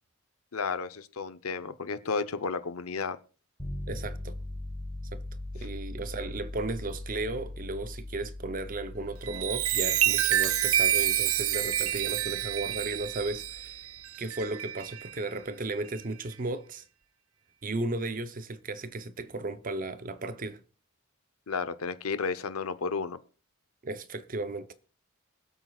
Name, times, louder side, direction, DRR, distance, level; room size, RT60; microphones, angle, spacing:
voice 1, 0.5-3.2 21.5-23.2, left 4 dB, 90° left, 0.8 m, -32 dB
sound 1, 3.6-13.7, left 1 dB, 15° left, 3.3 m, -41 dB
voice 2, 3.9-4.3 5.1-5.2 5.5-13.8 14.2-16.8 17.6-20.6 23.8-24.7, right 2 dB, 40° right, 0.8 m, -35 dB
Chime, 9.2-15.1 15.7-16.0, right 12 dB, 75° right, 0.5 m, -28 dB
24.0 x 8.1 x 2.4 m
head